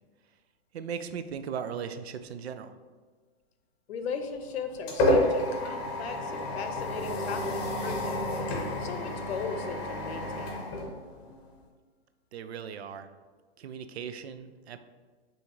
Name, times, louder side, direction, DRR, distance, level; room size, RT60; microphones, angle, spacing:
voice 1, 0.7-2.8 12.3-13.1 13.6-14.8, right 7 dB, 90° right, 10 dB, 0.5 m, -38 dB
voice 2, 3.9-8.2 8.8-10.9, left 5 dB, 80° left, 7 dB, 0.6 m, -38 dB
sound 1, 4.1-11.6, left 1 dB, 40° left, 1.0 m, -30 dB
5.6 x 2.8 x 3.0 m, 1.4 s
hypercardioid pair, 140°, 31 cm